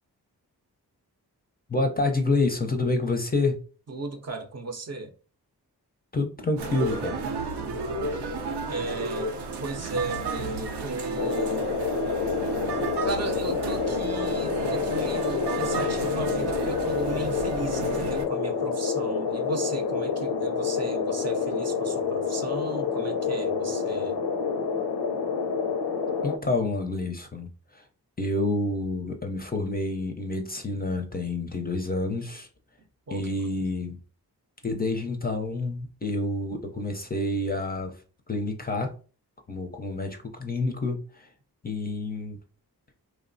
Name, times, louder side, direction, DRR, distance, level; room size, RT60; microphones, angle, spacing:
voice 1, 1.7-3.6 6.1-7.2 26.2-27.8 28.2-32.5 33.1-34.0 34.6-37.9 38.3-38.9 39.5-41.3 41.6-42.4, left 2 dB, 25° left, 0.4 m, -28 dB
voice 2, 3.9-5.1 8.7-9.3 9.6-11.7 13.0-24.2 33.1-33.2, right 2 dB, 40° right, 0.5 m, -35 dB
sound 1, 6.6-18.3, right 3 dB, 90° right, 0.5 m, -32 dB
sound 2, 11.2-26.4, left 5 dB, 80° left, 0.5 m, -28 dB
3.0 x 2.0 x 2.5 m
cardioid pair, 50°, 39 cm